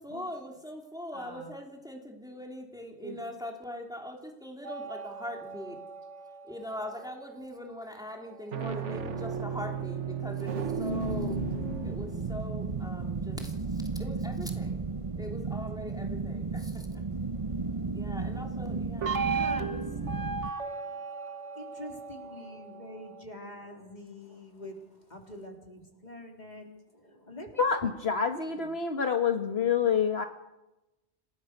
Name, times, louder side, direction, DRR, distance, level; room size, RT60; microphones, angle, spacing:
voice 1, 0.0-5.8 6.2-11.4 11.8-14.9 15.2-17.0 17.9-19.2, left 1 dB, 5° right, 2 dB, 3.1 m, -41 dB
voice 2, 1.1-1.6 3.0-3.2 19.2-20.0 20.6-21.1 21.5-27.9 28.4-28.7, left 1 dB, 40° left, 2 dB, 4.2 m, -45 dB
sound 1, 4.6-7.3 8.3-15.2 19.0-23.2, right 5 dB, 90° right, 1.6 m, -36 dB
sound 2, 10.9-20.5, right 4 dB, 30° right, 1.0 m, -34 dB
voice 3, 27.6-30.2, left 6 dB, 60° left, 5 dB, 1.7 m, -27 dB
28.0 x 18.5 x 6.7 m, 0.93 s
omnidirectional pair, 1.2 m